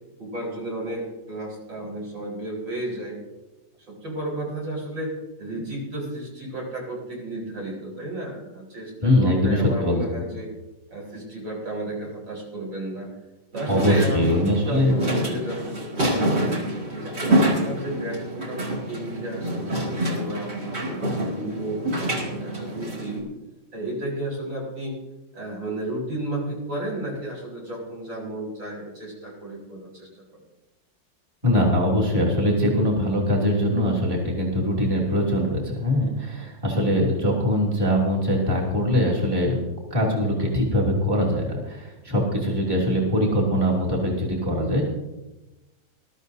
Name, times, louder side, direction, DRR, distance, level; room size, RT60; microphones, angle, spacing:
voice 1, 0.2-3.2 3.9-10.5 10.9-13.1 13.5-16.5 16.9-17.3 17.6-23.3 23.7-24.9 25.3-30.4, right 1 dB, 75° right, -4 dB, 5.1 m, -33 dB
voice 2, 9.0-10.2 13.7-14.9 31.4-39.6 39.9-44.8, equal, 10° right, -4 dB, 2.7 m, -22 dB
sound 1, 13.5-23.2, right 1 dB, 35° right, 2.8 m, -26 dB
21.0 x 13.0 x 2.7 m, 1.0 s
omnidirectional pair, 2.1 m